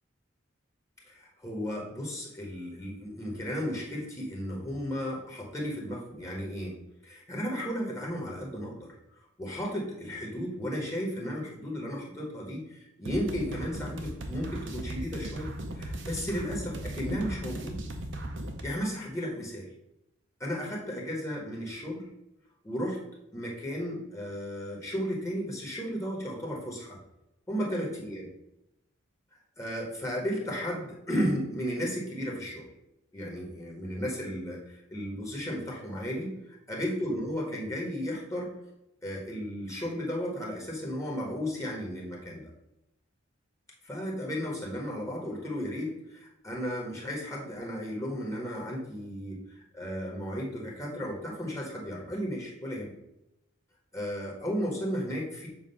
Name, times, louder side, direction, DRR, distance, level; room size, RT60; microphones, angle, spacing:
voice 1, 1.1-6.8 7.0-8.9 9.4-17.8 18.6-19.7 20.4-22.1 22.6-23.0 23.3-27.0 27.5-28.3 29.6-32.7 33.1-38.5 39.0-42.5 43.8-52.9 53.9-55.5, equal, 15° left, -3 dB, 1.2 m, -34 dB
sound 1, 13.0-18.6, right 1 dB, 65° right, 0.8 m, -37 dB
7.3 x 2.4 x 5.3 m, 0.86 s
head